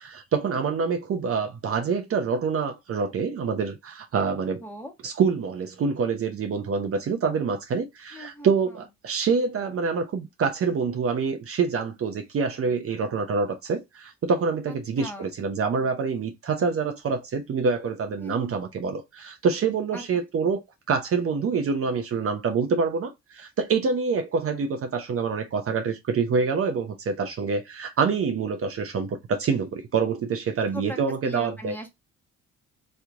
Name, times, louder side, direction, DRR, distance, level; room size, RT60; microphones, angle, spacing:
voice 1, 0.0-4.6 5.0-20.6 20.9-31.8, right 5 dB, 50° right, 0.7 m, -26 dB
voice 2, 4.6-4.9 8.1-8.5 15.0-15.3 18.2-18.5 19.9-20.0 30.7-31.0 31.2-31.9, equal, 5° left, 1.3 m, -38 dB
3.3 x 2.9 x 2.4 m
cardioid pair, 90°, 30 cm